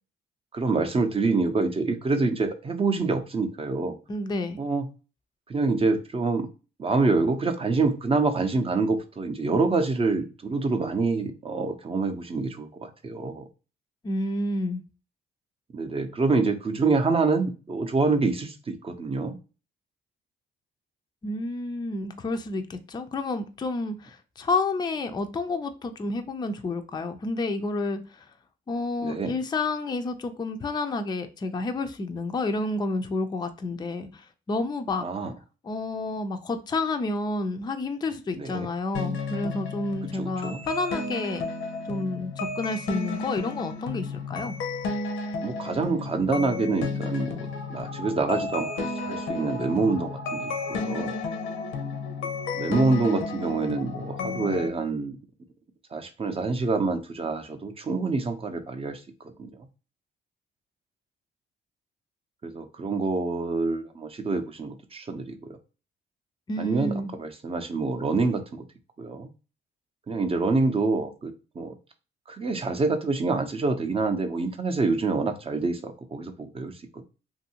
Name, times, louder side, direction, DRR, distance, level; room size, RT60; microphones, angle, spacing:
voice 1, 0.5-3.9 4.6-4.9 5.5-6.5 6.8-13.4 15.7-19.4 29.0-29.3 35.0-35.3 38.3-38.7 40.1-40.6 45.4-51.2 52.5-55.2 55.9-59.5 62.4-65.6 66.6-68.6 69.0-69.3 70.1-71.8 72.3-77.0, right 3 dB, 30° right, 0.6 m, -26 dB
voice 2, 4.1-4.6 14.0-14.8 21.2-28.3 28.7-35.1 35.6-41.4 41.9-44.6 66.5-67.1, left 2 dB, 20° left, 0.4 m, -30 dB
sound 1, 38.9-54.7, left 3 dB, 80° left, 0.6 m, -32 dB
2.7 x 2.5 x 2.8 m
cardioid pair, 90°, 20 cm